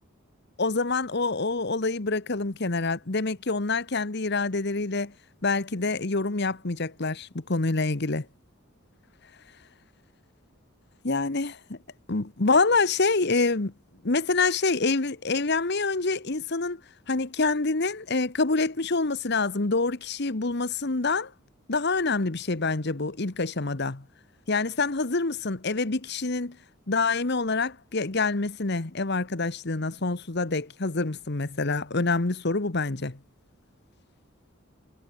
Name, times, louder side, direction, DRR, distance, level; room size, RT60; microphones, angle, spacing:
voice 1, 0.6-5.1 5.4-8.2 11.0-11.8 12.1-13.7 14.0-16.8 17.1-21.3 21.7-24.0 24.5-26.6 26.9-33.2, left 3 dB, 55° left, 1.2 m, -26 dB
head